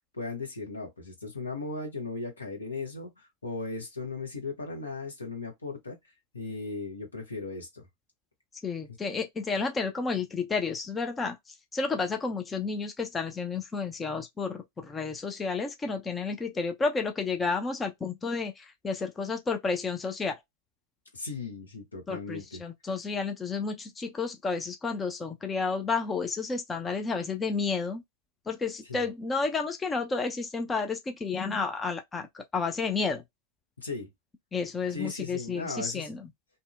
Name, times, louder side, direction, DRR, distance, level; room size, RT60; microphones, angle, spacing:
voice 1, 0.1-6.0 6.3-7.9 21.1-22.6 28.9-29.1 33.8-34.1 34.9-36.1, left 3 dB, 80° left, 1.0 m, -37 dB
voice 2, 8.6-11.4 11.7-20.4 22.1-28.0 28.5-32.3 32.5-33.2 34.5-36.2, left 4 dB, 15° left, 0.4 m, -31 dB
2.6 x 2.0 x 2.3 m
figure-of-eight pair, 90°, 0 cm